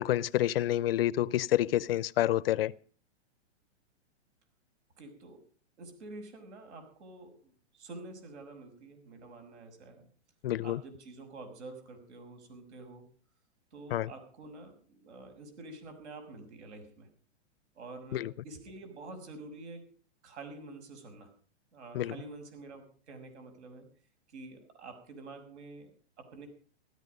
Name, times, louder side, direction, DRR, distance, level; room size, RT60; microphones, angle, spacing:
voice 1, 0.0-2.7 10.4-10.8 13.9-14.1 18.1-18.3 21.9-22.2, left 13 dB, 55° left, 0.6 m, -28 dB
voice 2, 5.0-5.4 5.8-10.1 10.6-13.1 13.7-17.1 17.7-19.9 20.2-21.3 21.7-23.9 24.3-25.9 26.2-26.5, right 3 dB, 70° right, 6.5 m, -48 dB
16.5 x 13.5 x 5.2 m
hypercardioid pair, 155°, 35 cm